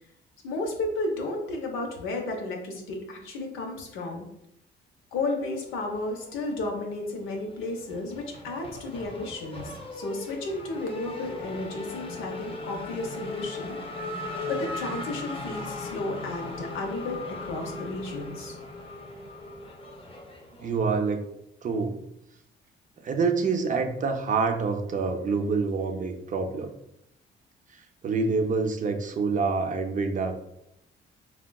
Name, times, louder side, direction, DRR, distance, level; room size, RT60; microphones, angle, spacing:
voice 1, 0.4-4.3 5.1-13.8 14.5-18.5, left 2 dB, 90° left, 2 dB, 0.7 m, -33 dB
Race car auto racing / Accelerating revving vroom, 5.8-6.8 7.1-20.8, left 2 dB, 30° left, 0.5 m, -38 dB
voice 2, 20.6-21.3 21.6-22.0 23.0-26.7 28.0-30.4, right 4 dB, 40° right, 5 dB, 0.4 m, -26 dB
3.6 x 2.2 x 2.2 m, 0.79 s
cardioid pair, 90°, 20 cm